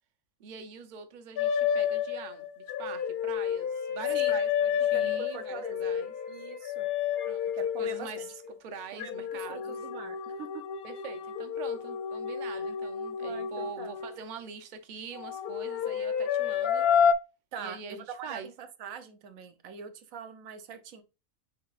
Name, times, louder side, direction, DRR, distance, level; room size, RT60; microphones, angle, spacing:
voice 1, 0.4-6.1 7.3-7.5 7.8-8.3 8.6-9.8 10.8-16.9 17.6-18.5, right 6 dB, 40° right, 0.8 m, -44 dB
sound 1, 1.4-8.6 9.0-14.2 15.1-17.1, left 8 dB, 60° left, 0.7 m, -30 dB
voice 2, 4.9-5.8 6.3-6.9 7.5-8.3 8.9-10.5 12.6-12.7 13.2-13.9 17.5-21.0, right 6 dB, 90° right, 1.2 m, -43 dB
5.7 x 3.8 x 2.4 m
omnidirectional pair, 1.4 m